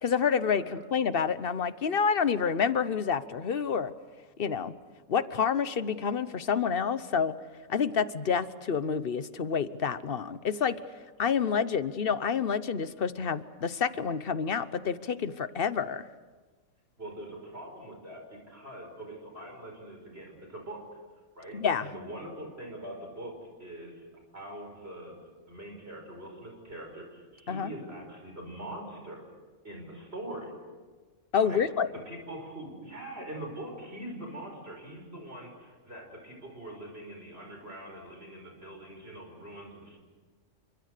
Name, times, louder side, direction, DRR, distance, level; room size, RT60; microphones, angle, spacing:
voice 1, 0.0-3.9 4.4-4.7 5.1-7.4 7.7-10.8 11.2-16.0 21.5-21.9 27.5-27.7 31.3-31.9, left 6 dB, 45° left, 14 dB, 1.0 m, -28 dB
voice 2, 17.0-20.8 21.3-24.0 24.3-25.2 25.5-29.3 29.6-30.5 31.4-31.7 32.1-40.0, right 1 dB, 45° right, 2 dB, 5.8 m, -43 dB
30.0 x 25.5 x 6.7 m, 1.4 s
omnidirectional pair, 1.5 m